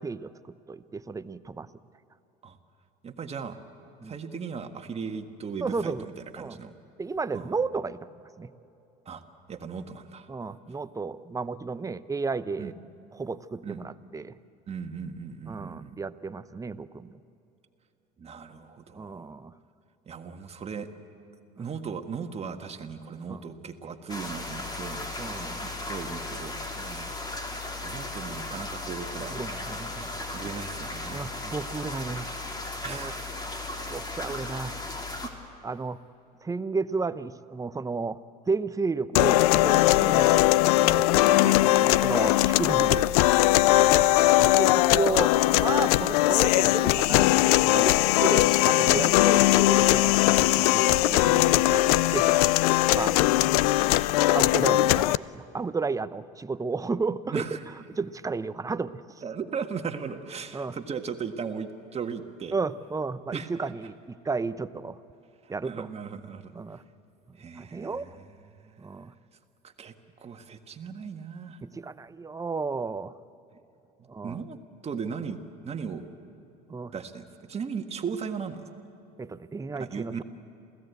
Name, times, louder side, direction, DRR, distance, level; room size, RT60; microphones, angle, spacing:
voice 1, 0.0-1.7 4.0-4.2 5.6-6.1 6.4-6.6 7.0-8.1 8.4-8.5 10.3-12.7 13.1-14.4 15.5-17.2 18.9-19.5 21.6-21.7 23.3-23.4 25.2-25.6 26.8-27.1 29.3-30.4 31.1-32.3 32.9-33.1 33.9-34.8 35.6-36.0 36.4-38.2 38.5-40.4 42.0-43.1 44.3-51.8 52.1-52.3 52.9-53.2 54.3-57.5 58.0-59.0 60.5-60.8 62.5-64.0 64.2-65.0 65.5-65.9 66.5-66.8 67.6-68.1 68.8-69.1 71.6-73.1 74.1-74.4 76.7-76.9 79.2-80.2, right 4 dB, 15° right, 14 dB, 0.8 m, -33 dB
voice 2, 3.0-3.6 4.0-6.0 6.3-6.7 7.3-7.5 9.1-9.2 9.5-10.3 12.6-12.7 13.6-13.8 14.7-16.0 18.2-19.3 20.1-20.9 21.6-25.1 25.6-27.1 27.8-29.4 30.3-31.3 32.8-33.4 40.0-40.2 41.2-42.0 43.7-44.5 49.0-49.1 52.2-52.3 57.3-57.6 59.2-62.5 63.3-63.5 65.6-66.5 67.4-68.2 68.6-68.8 69.6-71.6 74.0-74.6 74.8-75.4 75.6-76.1 76.9-78.6 79.8-80.2, right 6 dB, 30° right, 6 dB, 1.7 m, -37 dB
sound 1, 24.1-35.3, left 2 dB, 20° left, 3.2 m, -36 dB
sound 2, 39.2-55.2, left 16 dB, 80° left, 0.4 m, -20 dB
28.0 x 16.5 x 8.3 m, 2.8 s
supercardioid pair, 85°, 19 cm